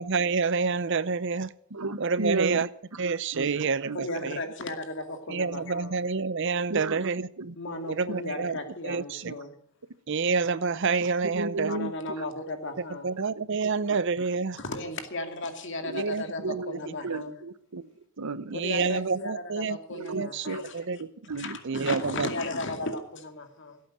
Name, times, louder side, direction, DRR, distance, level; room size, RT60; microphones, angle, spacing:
voice 1, 0.0-1.5 2.0-2.7 3.0-4.4 5.3-7.3 7.9-8.5 8.8-9.2 10.1-11.7 13.0-14.6 16.0-16.2 18.5-19.8 20.1-20.5 20.7-21.0 21.6-22.3, right 5 dB, 55° right, 17 dB, 0.6 m, -28 dB
voice 2, 1.7-2.6 3.3-4.0 6.7-7.1 7.4-7.5 8.9-9.0 9.2-9.3 11.2-11.9 15.8-16.1 16.4-16.8 17.0-17.9 18.2-18.6 19.9-20.6 21.0-21.9, right 3 dB, 90° right, 15 dB, 0.9 m, -33 dB
voice 3, 3.9-6.0 7.6-9.5 11.7-13.0 14.6-17.4 18.5-20.8 21.3-23.8, left 2 dB, 55° left, 6 dB, 2.3 m, -35 dB
17.0 x 8.6 x 9.2 m, 0.64 s
head